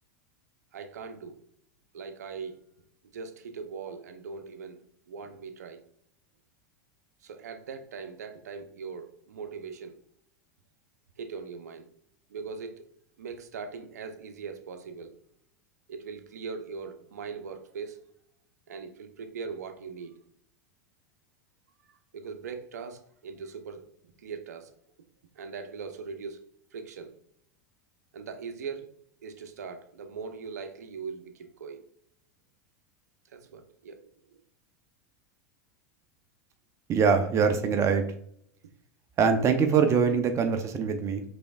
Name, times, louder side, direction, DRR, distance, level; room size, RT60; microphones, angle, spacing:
voice 1, 0.7-1.4 1.9-2.6 3.1-4.8 5.1-5.8 7.2-10.0 11.2-11.9 12.3-12.9 13.2-15.1 15.9-18.1 18.7-20.2 21.9-23.9 24.2-24.7 25.4-27.1 28.1-28.9 29.2-31.8 33.3-34.4, right 5 dB, 80° right, 0.6 m, -40 dB
voice 2, 36.9-38.0 39.2-41.2, right 6 dB, 35° right, 0.6 m, -23 dB
5.0 x 3.5 x 2.3 m
hypercardioid pair, 95°, 9 cm